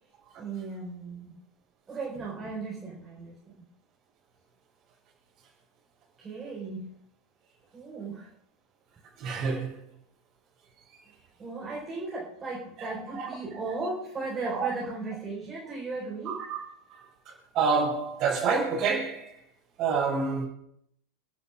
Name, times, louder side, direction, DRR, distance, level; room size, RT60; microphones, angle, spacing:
voice 1, 0.4-1.3 1.9-3.4 6.2-6.9 7.7-8.3 11.4-16.4, right 3 dB, 20° right, 4.6 m, -36 dB
voice 2, 9.2-9.7 12.8-12.9 13.1-13.3 13.6-13.7 14.5-14.7 16.3-16.6 16.9-17.0 17.5-19.3 19.8-20.5, right 5 dB, 35° right, 5.8 m, -27 dB
29.5 x 11.0 x 2.6 m
figure-of-eight pair, 90°, 0 cm